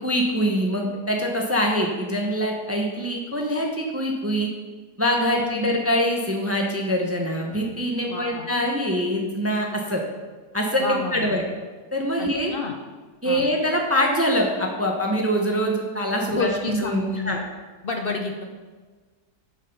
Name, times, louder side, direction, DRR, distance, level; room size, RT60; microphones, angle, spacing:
voice 1, 0.0-4.5 5.0-10.0 10.5-11.4 11.9-12.5 13.2-17.4, equal, 15° right, 1 dB, 0.6 m, -24 dB
voice 2, 5.3-5.8 8.1-8.5 10.8-11.4 12.2-12.8 13.2-13.5 16.2-17.4 17.8-18.4, left 3 dB, 60° left, 3 dB, 0.5 m, -30 dB
7.5 x 6.5 x 5.3 m, 1.4 s
omnidirectional pair, 1.8 m